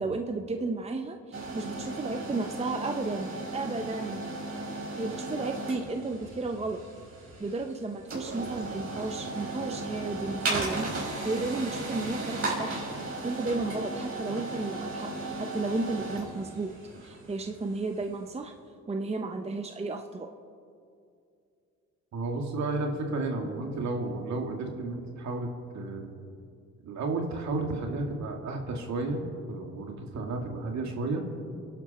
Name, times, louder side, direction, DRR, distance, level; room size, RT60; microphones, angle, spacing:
voice 1, 0.0-4.2 5.0-6.8 7.4-12.8 13.2-16.7 17.0-18.5 18.9-20.3, right 3 dB, 20° right, 5 dB, 0.9 m, -33 dB
sound 1, 1.3-18.2, right 2 dB, 45° right, 5.3 m, -36 dB
voice 2, 22.1-26.1 26.8-31.2, right 2 dB, 65° right, 2 dB, 2.5 m, -32 dB
28.5 x 11.5 x 4.4 m, 2.4 s
cardioid pair, 90°, 30 cm